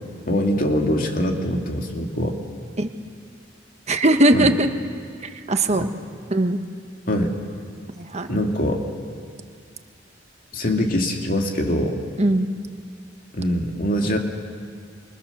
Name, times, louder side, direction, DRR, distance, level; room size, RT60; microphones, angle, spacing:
voice 1, 0.3-2.4 4.3-4.5 5.7-5.9 7.1-7.3 8.3-8.8 10.5-12.0 13.3-14.2, left 1 dB, 50° left, 2 dB, 2.7 m, -23 dB
voice 2, 3.9-4.7 5.2-5.9 6.3-6.6 8.0-8.3 12.2-12.5, right 1 dB, 35° right, 7 dB, 1.4 m, -19 dB
28.5 x 26.5 x 7.0 m, 2.2 s
head